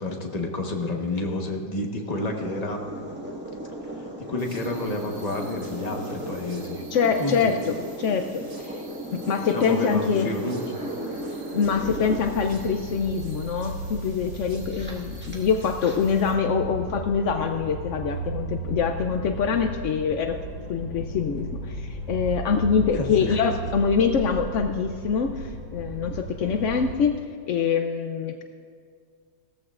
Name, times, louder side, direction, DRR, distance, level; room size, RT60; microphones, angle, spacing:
voice 1, 0.0-2.8 3.9-6.8 7.2-7.6 9.5-10.7 15.3-15.4 16.6-16.9 22.9-23.4, left 2 dB, 25° left, 1 dB, 1.1 m, -30 dB
sound 1, 2.1-16.0, right 1 dB, 5° right, 1.4 m, -37 dB
sound 2, 4.4-16.3, right 2 dB, 70° right, 3.1 m, -50 dB
voice 2, 6.9-8.8 9.1-10.3 11.5-20.4 20.7-27.2 27.5-28.4, left 6 dB, 75° left, 5 dB, 0.6 m, -25 dB
sound 3, 11.6-26.9, right 1 dB, 90° right, 4.0 m, -35 dB
18.0 x 14.0 x 2.5 m, 2.1 s
omnidirectional pair, 1.9 m